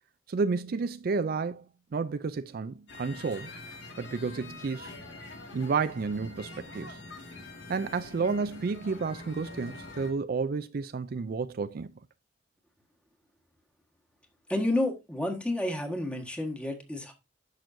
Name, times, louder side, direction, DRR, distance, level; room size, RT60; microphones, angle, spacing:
voice 1, 0.3-1.7 1.9-3.5 4.0-4.9 5.5-7.0 7.7-11.9, right 4 dB, 55° right, 0.4 m, -31 dB
sound 1, 2.9-10.1, left 2 dB, 80° left, 2.0 m, -45 dB
voice 2, 14.5-17.1, left 1 dB, 5° left, 1.4 m, -30 dB
10.5 x 6.2 x 2.6 m
head